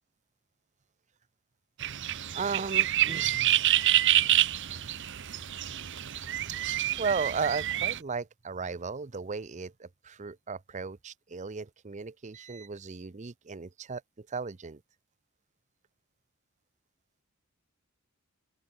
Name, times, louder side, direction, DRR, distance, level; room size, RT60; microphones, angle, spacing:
sound 1, 1.8-8.0, right 13 dB, 55° right, 0.9 m, -27 dB
voice 1, 2.3-3.7 7.0-14.8, right 5 dB, 30° right, 0.6 m, -35 dB
open air
head